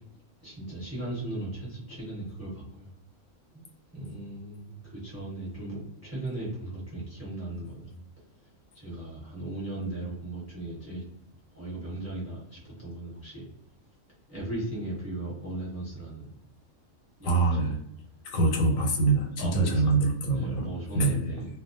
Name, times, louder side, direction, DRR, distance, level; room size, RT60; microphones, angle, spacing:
voice 1, 0.4-2.9 3.5-3.6 3.9-8.0 8.7-11.0 11.5-13.5 14.3-16.4 17.2-17.7 18.8-18.9 19.4-20.0 20.3-21.5, right 2 dB, 15° right, -6 dB, 0.9 m, -37 dB
voice 2, 17.2-17.7 18.2-20.7 20.9-21.5, right 3 dB, 80° left, 2 dB, 1.0 m, -25 dB
2.3 x 2.1 x 2.6 m, 0.75 s
omnidirectional pair, 1.4 m